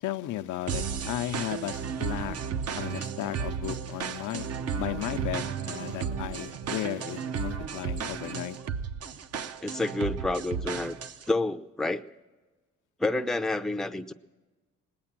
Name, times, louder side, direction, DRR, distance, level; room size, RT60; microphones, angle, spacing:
voice 1, 0.0-2.4 2.7-4.5 4.7-8.6, left 14 dB, 80° left, 10 dB, 0.6 m, -35 dB
sound 1, 0.7-11.3, right 6 dB, 55° right, 0.7 m, -34 dB
voice 2, 9.6-11.0 11.3-12.0 13.0-14.1, left 2 dB, ahead, 8 dB, 0.5 m, -29 dB
19.5 x 8.7 x 7.3 m, 1.2 s
cardioid pair, 90°, 30 cm